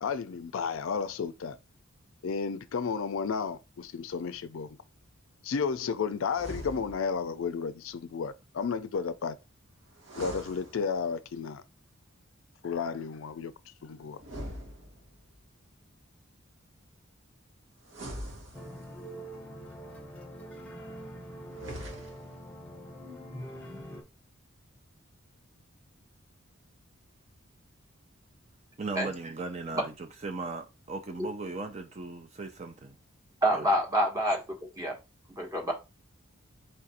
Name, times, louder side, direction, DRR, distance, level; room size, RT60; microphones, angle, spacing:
voice 1, 0.0-1.6 2.2-4.8 5.4-9.4 10.2-11.6 12.6-13.5 13.8-14.2, left 5 dB, 75° left, 0.4 m, -32 dB
sound 1, 6.3-7.3 10.0-11.3 14.2-15.4 17.8-19.1 21.4-22.4, equal, 70° right, 1.2 m, -43 dB
sound 2, 18.5-24.0, equal, 5° left, 0.8 m, -44 dB
voice 2, 28.8-29.9 30.2-33.0 33.5-33.7, right 3 dB, 30° right, 0.5 m, -37 dB
voice 3, 33.4-35.0 35.4-35.7, equal, 15° right, 1.2 m, -27 dB
4.4 x 2.5 x 4.1 m
head